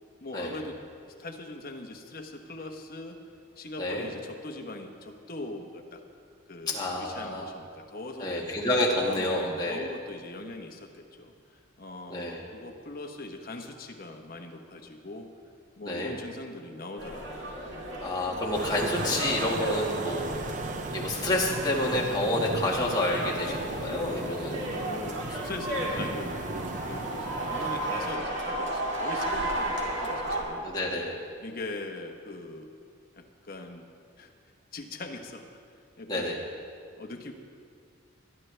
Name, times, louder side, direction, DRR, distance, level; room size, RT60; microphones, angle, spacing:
voice 1, 0.2-0.8 1.2-3.2 3.6-6.0 6.5-8.5 9.2-11.3 11.8-15.3 15.8-17.6 24.5-26.4 26.8-30.7 31.4-32.7 33.2-33.9 34.2-34.3 34.7-35.6 36.0-36.3 37.0-37.3, left 2 dB, 45° left, 3 dB, 1.1 m, -41 dB
voice 2, 6.7-7.5 8.2-9.9 12.1-12.4 15.9-16.1 18.0-20.5 20.9-24.6 30.6-31.1 36.1-36.4, left 1 dB, 20° left, -3 dB, 1.8 m, -29 dB
sound 1, 17.0-30.4, right 1 dB, 60° right, 2.2 m, -34 dB
sound 2, 18.5-28.1, right 2 dB, 35° right, 0.5 m, -36 dB
21.5 x 11.0 x 3.3 m, 2.3 s
head